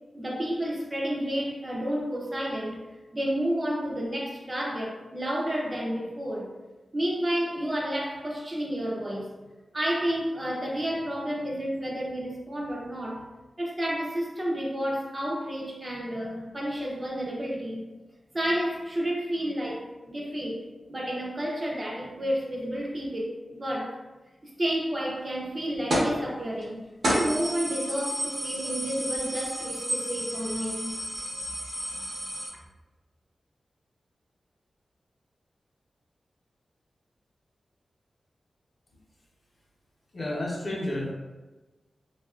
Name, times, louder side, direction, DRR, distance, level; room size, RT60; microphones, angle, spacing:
voice 1, 0.1-2.8 3.1-6.5 6.9-9.3 9.7-13.3 13.6-17.8 18.3-20.6 20.9-24.0 24.6-31.0 31.3-31.7 32.0-32.1, equal, 25° right, -2 dB, 0.5 m, -31 dB
sound 1, 25.9-26.2 26.6-26.7 27.0-32.5, equal, 60° right, 0.7 m, -31 dB
voice 2, 40.1-41.1, left 1 dB, 50° left, -4 dB, 0.6 m, -31 dB
2.7 x 2.3 x 2.3 m, 1.1 s
wide cardioid pair, 125°, 0 cm